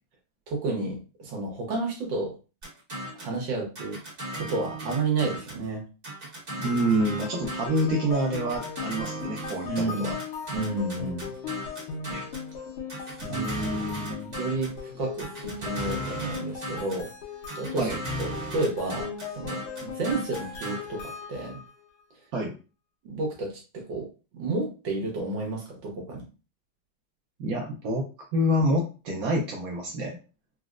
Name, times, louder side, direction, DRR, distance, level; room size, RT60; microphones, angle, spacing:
voice 1, 0.5-2.3 3.1-4.0 4.3-5.8 9.6-10.2 10.5-11.3 13.3-14.0 14.4-17.1 17.5-17.9 18.2-19.1 19.3-21.6 23.0-24.1 24.3-26.3, right 3 dB, 65° right, -1 dB, 1.5 m, -31 dB
sound 1, 2.6-3.4 3.8-5.6 6.0-7.9 8.3-12.5 12.9-14.8 15.2-17.1 17.5-20.8, right 1 dB, 35° right, 1.0 m, -36 dB
voice 2, 6.6-10.1 12.1-12.2 13.2-14.3 17.8-18.0 22.3-22.5 27.4-28.1 28.3-30.2, equal, 85° right, 0 dB, 0.7 m, -27 dB
sound 2, 7.0-21.7, left 6 dB, 85° left, 1.7 m, -38 dB
4.1 x 2.0 x 2.4 m, 0.33 s
omnidirectional pair, 2.3 m